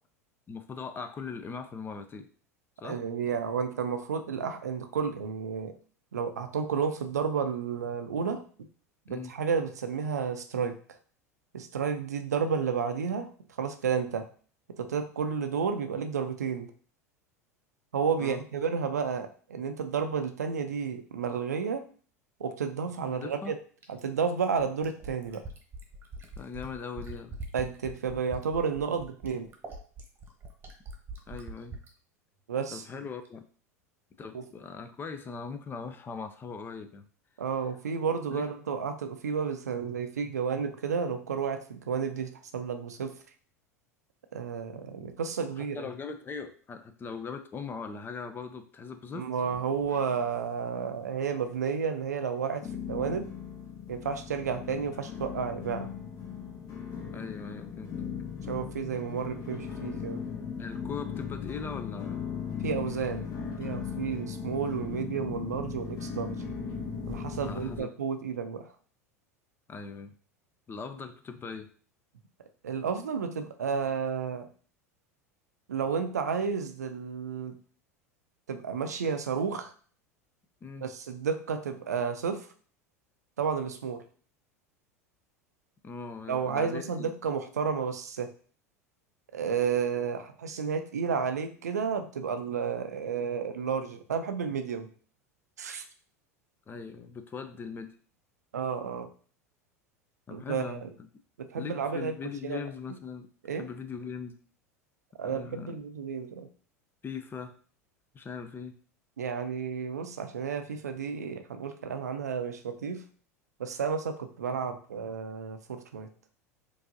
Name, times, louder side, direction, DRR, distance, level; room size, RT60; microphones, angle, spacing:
voice 1, 0.5-2.3 2.8-3.0 9.1-9.3 18.2-18.4 23.0-23.6 26.4-27.3 31.3-31.7 32.7-33.4 34.2-37.1 38.3-38.5 45.6-49.3 57.1-57.9 60.6-62.3 67.4-67.9 69.7-70.1 70.7-71.7 80.6-80.9 85.8-87.1 96.7-97.9 100.3-100.8 101.6-103.3 103.5-104.3 105.2-105.7 107.0-107.6 108.1-108.7, left 5 dB, 25° left, 8 dB, 0.5 m, -40 dB
voice 2, 2.8-5.7 6.1-8.4 9.1-10.8 11.5-13.3 13.6-14.3 14.7-16.7 17.9-21.8 22.4-23.6 23.9-25.4 27.5-29.5 32.5-32.8 34.3-34.4 37.4-43.1 44.3-45.9 49.1-53.3 53.9-55.9 58.5-60.2 62.6-66.4 67.1-68.7 72.6-74.5 75.7-77.6 78.5-79.7 80.8-82.5 83.4-84.0 86.3-88.3 89.3-94.9 95.6-95.8 98.5-99.1 100.3-100.9 101.4-102.1 102.4-102.6 103.4-103.6 105.2-106.5 109.2-113.0 113.6-116.1, right 6 dB, 80° right, 7 dB, 0.5 m, -31 dB
Fill (with liquid), 23.8-31.9 33.3-33.4, right 2 dB, 25° right, 1.0 m, -43 dB
sound 1, 49.4-50.4 50.7-51.3 51.8-51.9 52.6-67.8, left 7 dB, 50° left, 1.3 m, -38 dB
4.6 x 2.7 x 2.7 m, 0.43 s
hypercardioid pair, 85°, 9 cm